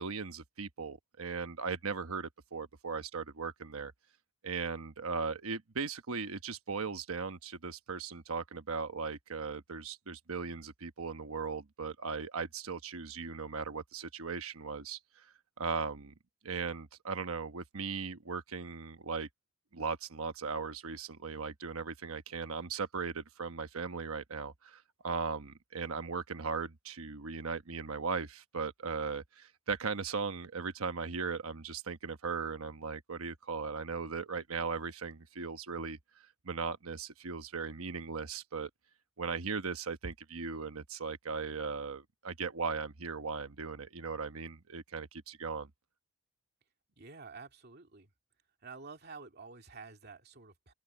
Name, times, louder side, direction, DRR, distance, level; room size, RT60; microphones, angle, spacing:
voice 1, 0.0-3.9 4.4-16.1 16.4-19.3 19.7-38.7 39.2-45.7, right 5 dB, 80° right, 1.1 m, -38 dB
voice 2, 47.0-48.1 48.6-50.7, right 4 dB, 50° right, 2.7 m, -49 dB
head